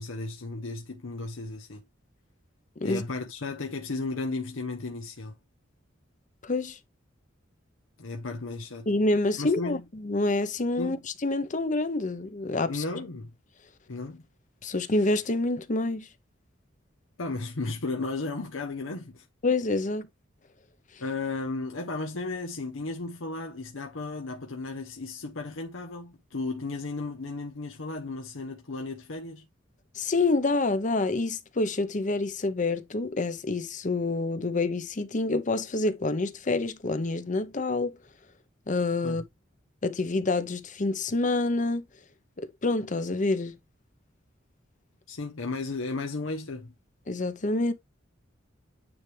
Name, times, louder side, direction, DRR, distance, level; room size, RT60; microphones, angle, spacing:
voice 1, 0.0-1.8 2.8-5.4 8.0-8.9 9.4-9.8 10.8-11.0 12.7-13.3 13.9-14.2 17.2-19.2 21.0-29.5 39.0-39.2 45.1-46.7, left 3 dB, 85° left, 0.9 m, -34 dB
voice 2, 6.4-6.8 8.9-11.0 11.2-12.8 14.6-16.1 19.4-20.1 29.9-38.0 38.7-39.2 39.8-41.8 42.4-43.6 47.1-47.7, left 2 dB, 40° left, 0.8 m, -27 dB
9.6 x 3.4 x 3.3 m
head